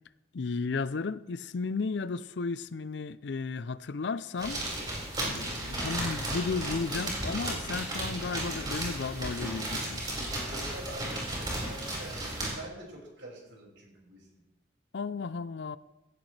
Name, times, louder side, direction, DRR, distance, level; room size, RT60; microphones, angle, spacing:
voice 1, 0.3-4.6 5.2-10.2 14.9-15.8, left 4 dB, 65° left, 0.5 m, -34 dB
sound 1, 4.4-12.5, right 1 dB, 25° right, 5.0 m, -34 dB
voice 2, 10.4-14.4, right 1 dB, 85° right, 5.8 m, -46 dB
16.5 x 16.0 x 3.3 m
head